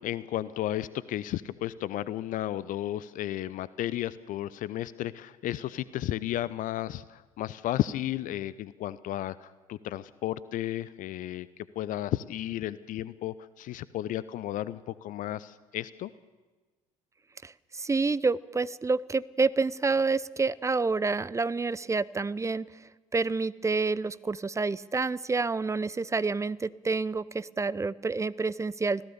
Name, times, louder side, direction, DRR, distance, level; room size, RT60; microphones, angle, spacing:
voice 1, 0.0-11.5 11.7-16.1, left 13 dB, 50° left, 18 dB, 0.7 m, -33 dB
voice 2, 17.4-22.7 23.1-29.1, right 4 dB, 15° right, 18 dB, 0.7 m, -28 dB
26.0 x 16.5 x 6.9 m, 1.3 s
figure-of-eight pair, 55°, 18 cm